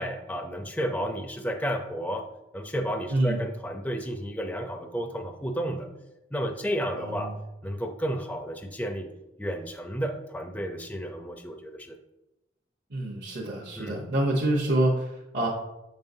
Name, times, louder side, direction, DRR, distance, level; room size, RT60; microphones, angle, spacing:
voice 1, 0.0-2.2 2.5-5.9 6.3-7.3 7.6-9.1 9.4-12.0 13.8-14.0, equal, 10° left, 5 dB, 0.4 m, -32 dB
voice 2, 3.1-3.4 6.9-7.3 12.9-15.5, right 1 dB, 55° right, -5 dB, 0.9 m, -27 dB
7.2 x 5.3 x 2.6 m, 0.95 s
head